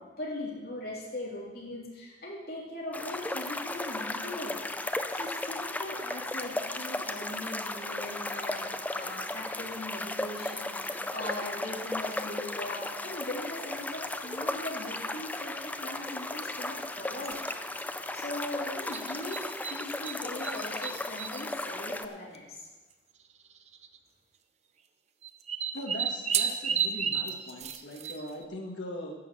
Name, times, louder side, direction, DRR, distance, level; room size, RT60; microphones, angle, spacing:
voice 1, 0.0-4.6 5.1-8.6 8.9-17.4 17.6-17.8 18.1-22.7, left 1 dB, 55° left, -3 dB, 3.0 m, -40 dB
sound 1, 2.9-22.1, left 2 dB, 10° left, 0.4 m, -35 dB
sound 2, 17.2-17.6 18.9-20.2 20.4-21.4 22.3-22.4 22.6-22.7 23.7-24.0 25.2-28.4, right 7 dB, 35° right, 0.6 m, -32 dB
voice 2, 25.7-29.1, left 1 dB, 80° left, 0 dB, 1.6 m, -40 dB
11.0 x 6.5 x 7.7 m, 1.2 s
head